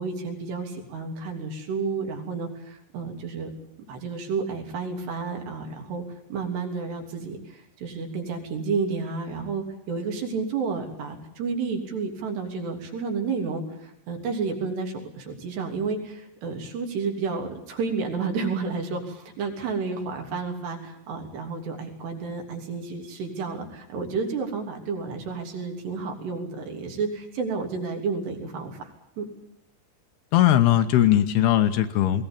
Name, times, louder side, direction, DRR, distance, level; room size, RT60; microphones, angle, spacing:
voice 1, 0.0-3.5 3.9-6.0 6.3-28.9 29.2-29.3, right 4 dB, 75° right, 3 dB, 5.2 m, -31 dB
voice 2, 30.3-32.2, left 12 dB, 75° left, 8 dB, 2.8 m, -19 dB
20.5 x 19.0 x 8.8 m, 0.76 s
omnidirectional pair, 4.9 m